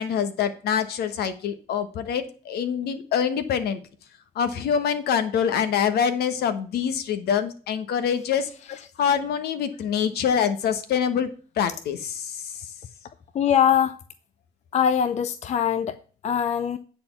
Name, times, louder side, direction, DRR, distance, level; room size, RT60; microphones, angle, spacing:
voice 1, 0.0-3.8 4.3-8.5 9.0-11.3 11.6-12.7, left 7 dB, 70° left, 1.3 m, -25 dB
voice 2, 13.4-13.9 14.7-16.0 16.2-16.8, left 9 dB, 40° left, 0.6 m, -22 dB
9.5 x 4.3 x 6.9 m
cardioid pair, 110°, 17 cm